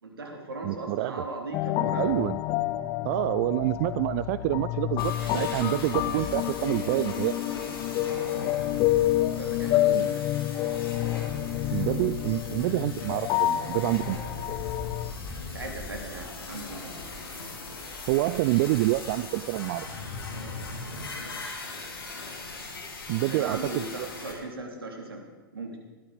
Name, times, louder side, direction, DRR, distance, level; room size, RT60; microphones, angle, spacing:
voice 1, 0.0-2.1 9.3-10.2 15.5-16.9 23.3-25.2 25.5-25.8, right 2 dB, 75° right, 2 dB, 3.6 m, -38 dB
voice 2, 0.6-1.1 2.0-2.4 3.0-7.4 9.9-10.1 11.7-14.2 18.1-20.0 23.1-24.1, right 18 dB, 45° right, 16 dB, 0.4 m, -27 dB
sound 1, 1.5-15.1, left 15 dB, 35° left, 0.6 m, -28 dB
Wind, 3.5-3.8 4.2-4.3 4.5-8.1 8.4-20.6 20.8-20.9, left 3 dB, 15° left, 2.1 m, -48 dB
sound 2, 5.0-24.3, left 3 dB, 75° left, 4.0 m, -39 dB
19.5 x 13.5 x 5.2 m, 1.2 s
figure-of-eight pair, 100°, 12 cm